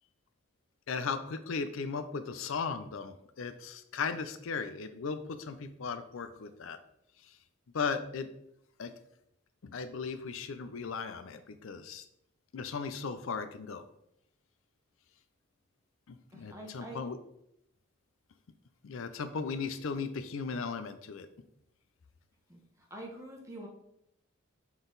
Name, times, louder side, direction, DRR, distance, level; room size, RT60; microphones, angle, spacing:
voice 1, 0.9-6.8 7.7-8.3 8.8-8.9 9.6-12.0 12.5-13.8 16.1-17.2 18.8-21.3, left 5 dB, 70° left, 10 dB, 0.5 m, -37 dB
voice 2, 16.3-17.0 22.5-22.6 22.9-23.7, right 1 dB, 15° right, -1 dB, 1.2 m, -45 dB
7.1 x 3.9 x 3.9 m, 0.77 s
head